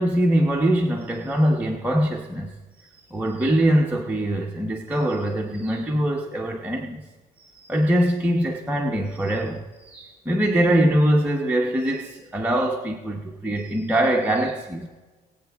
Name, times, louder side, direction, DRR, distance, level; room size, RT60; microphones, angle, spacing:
voice 1, 0.0-7.0 7.4-14.9, right 1 dB, 10° right, 1.0 m, -23 dB
21.5 x 7.9 x 3.5 m
cardioid pair, 110°, 17 cm